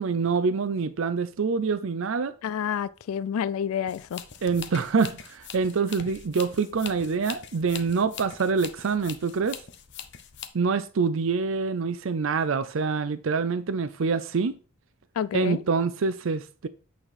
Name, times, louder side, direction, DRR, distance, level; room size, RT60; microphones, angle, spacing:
voice 1, 0.0-2.3 4.4-9.6 10.5-14.6 15.3-16.7, right 5 dB, 65° right, 0.5 m, -26 dB
voice 2, 2.4-4.2 15.2-15.6, left 8 dB, 85° left, 0.3 m, -29 dB
sound 1, 3.9-10.5, left 8 dB, 55° left, 0.8 m, -42 dB
8.8 x 4.2 x 4.9 m
head